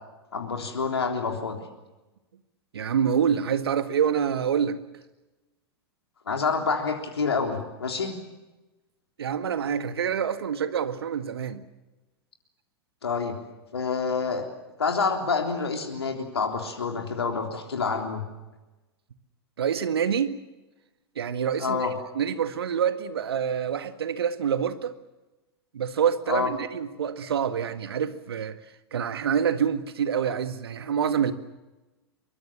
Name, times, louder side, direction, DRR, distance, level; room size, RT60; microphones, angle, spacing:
voice 1, 0.3-1.6 6.3-8.1 13.0-13.4 13.7-14.4 14.8-18.2 21.6-21.9 26.3-26.5, left 5 dB, 75° left, 3.6 m, -27 dB
voice 2, 2.7-4.8 9.2-11.6 19.6-20.4 21.2-21.9 22.2-25.0 25.7-28.6 28.9-31.3, right 8 dB, 70° right, 1.8 m, -26 dB
24.5 x 23.5 x 7.4 m
figure-of-eight pair, 100°, 13 cm